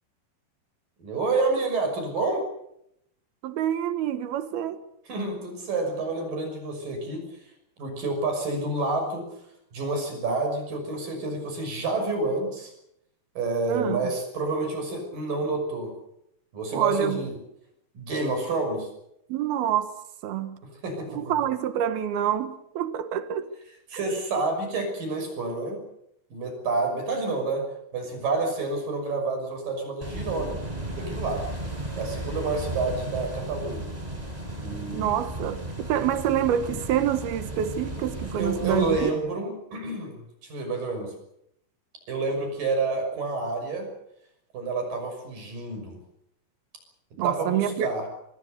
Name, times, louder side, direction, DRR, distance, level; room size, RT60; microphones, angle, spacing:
voice 1, 1.0-2.4 5.1-7.2 7.8-9.3 9.7-12.7 13.4-15.9 16.5-17.3 17.9-18.9 20.8-21.3 23.9-25.8 26.3-27.6 27.9-30.6 31.0-31.4 32.0-33.9 34.6-35.4 38.4-40.2 40.4-41.1 42.1-43.9 44.5-46.0 47.1-48.1, right 3 dB, 65° right, 7.7 m, -29 dB
voice 2, 3.4-4.8 13.7-14.1 16.7-17.3 19.3-19.9 20.2-20.6 21.1-23.5 34.9-39.1 47.2-47.9, right 10 dB, 90° right, 3.3 m, -27 dB
sound 1, 30.0-39.1, right 1 dB, 10° right, 4.3 m, -35 dB
25.0 x 21.5 x 6.7 m
omnidirectional pair, 4.3 m